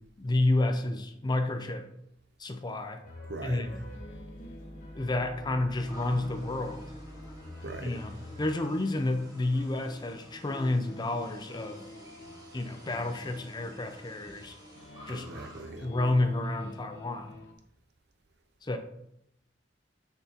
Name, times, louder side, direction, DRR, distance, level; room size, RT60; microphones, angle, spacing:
voice 1, 0.2-1.9 2.4-3.0 3.4-3.8 4.9-6.8 7.8-11.8 12.5-14.5 15.1-15.3 15.8-17.3 18.6-18.8, left 2 dB, 25° left, 6 dB, 0.5 m, -30 dB
sound 1, 3.0-8.5, left 1 dB, 45° left, 1.2 m, -45 dB
voice 2, 3.3-3.7 7.6-8.0 15.1-15.9, right 3 dB, 65° right, 8 dB, 0.7 m, -41 dB
sound 2, 3.9-17.5, left 2 dB, 70° left, 0.8 m, -51 dB
sound 3, 5.8-15.6, equal, 20° right, 1.3 m, -51 dB
6.6 x 6.5 x 2.9 m, 0.80 s
head